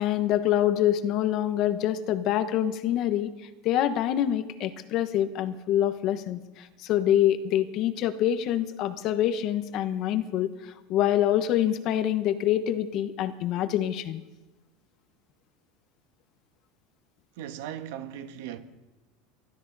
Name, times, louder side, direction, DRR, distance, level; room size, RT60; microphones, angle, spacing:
voice 1, 0.0-3.3 3.6-14.2, left 11 dB, 40° left, 1.0 m, -26 dB
voice 2, 17.4-18.6, right 10 dB, 70° right, 1.3 m, -38 dB
24.0 x 13.0 x 4.0 m
supercardioid pair, 160°, 0 cm